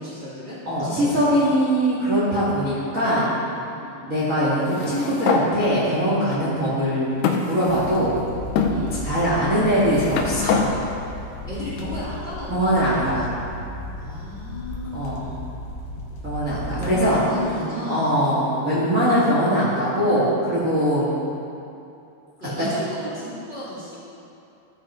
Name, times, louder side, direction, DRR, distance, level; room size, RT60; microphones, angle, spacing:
voice 1, 0.0-1.6 3.7-4.0 8.6-8.9 11.5-12.9 14.0-15.4 16.7-18.1 22.4-24.0, left 1 dB, 20° left, -9 dB, 1.6 m, -33 dB
voice 2, 0.6-3.3 4.1-8.1 9.0-10.7 12.5-13.3 14.9-15.2 16.2-17.2 17.9-21.1, equal, 60° right, -10 dB, 0.8 m, -21 dB
sound 1, 4.6-5.5 6.3-6.4 7.2-8.1 8.6-8.8 9.6-10.7, left 6 dB, 90° left, 2.7 m, -24 dB
sound 2, 7.7-17.1, equal, 70° left, 2.5 m, -35 dB
14.5 x 5.6 x 4.3 m, 2.7 s
omnidirectional pair, 4.7 m